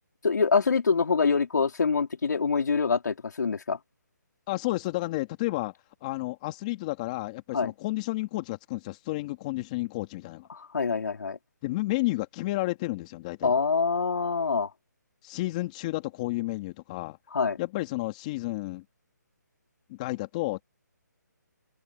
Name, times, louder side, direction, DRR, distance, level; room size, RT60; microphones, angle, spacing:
voice 1, 0.2-3.8 7.5-7.7 10.5-11.4 13.4-14.7 17.3-17.6, left 5 dB, 70° left, 4.1 m, -25 dB
voice 2, 4.5-5.7 6.0-10.5 11.6-13.5 15.2-17.2 17.6-18.8 19.9-20.6, left 19 dB, 20° left, 2.3 m, -31 dB
hypercardioid pair, 165°, 10 cm